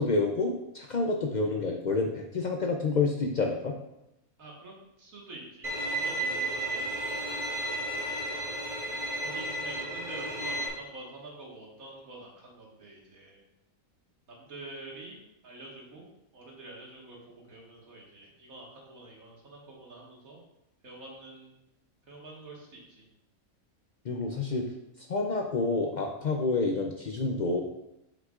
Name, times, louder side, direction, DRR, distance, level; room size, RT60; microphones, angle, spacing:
voice 1, 0.0-3.7 24.1-24.7 25.1-27.6, left 3 dB, 75° left, 1 dB, 0.4 m, -28 dB
voice 2, 4.4-4.7 5.0-7.2 9.2-13.4 14.3-15.2 15.4-16.1 16.3-20.4 20.8-21.5 22.0-23.1, right 2 dB, 70° right, -3 dB, 2.1 m, -47 dB
Bowed string instrument, 5.6-10.7, right 1 dB, 25° right, 1.7 m, -33 dB
7.9 x 5.6 x 2.4 m, 0.87 s
omnidirectional pair, 1.5 m